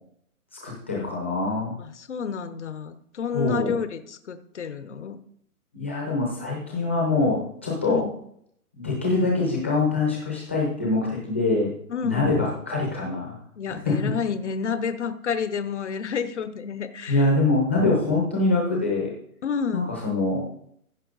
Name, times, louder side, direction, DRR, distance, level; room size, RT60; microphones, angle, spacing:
voice 1, 0.6-1.7 3.3-3.8 5.7-8.0 8.8-11.7 12.0-13.4 13.7-14.1 17.1-19.1 19.7-20.4, left 3 dB, 10° left, -3 dB, 0.8 m, -24 dB
voice 2, 1.8-5.2 7.9-8.1 11.9-12.2 13.6-17.3 19.4-19.8, left 6 dB, 55° left, 11 dB, 0.9 m, -30 dB
15.0 x 5.6 x 3.9 m, 0.68 s
hypercardioid pair, 175°, 43 cm